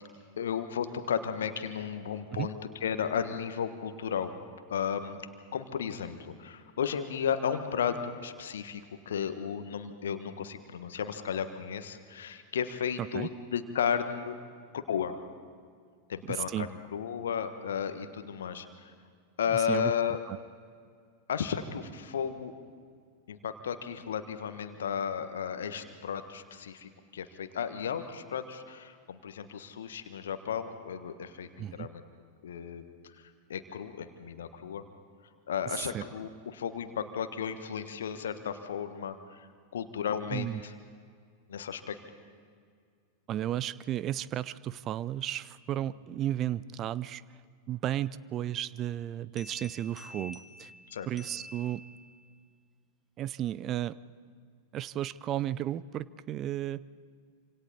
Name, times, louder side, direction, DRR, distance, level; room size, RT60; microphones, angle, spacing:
voice 1, 0.4-4.3 4.7-5.2 5.5-14.3 14.7-15.2 16.1-16.7 16.9-18.7 19.4-20.2 21.3-22.5 23.3-32.0 32.4-32.8 33.5-34.8 35.5-39.5 39.7-40.7 41.5-41.9 50.9-51.1, left 7 dB, 65° left, 9 dB, 1.4 m, -34 dB
voice 2, 13.0-13.3 16.3-16.7 19.5-19.9 20.3-20.4 31.6-31.9 35.7-36.0 40.3-40.6 43.3-47.2 47.7-50.7 51.1-51.8 53.2-54.0 54.7-56.9, right 12 dB, 30° right, 19 dB, 0.5 m, -34 dB
sound 1, 49.4-52.3, left 1 dB, 5° left, 1.6 m, -49 dB
27.0 x 26.5 x 4.2 m, 2.1 s
figure-of-eight pair, 90°, 0 cm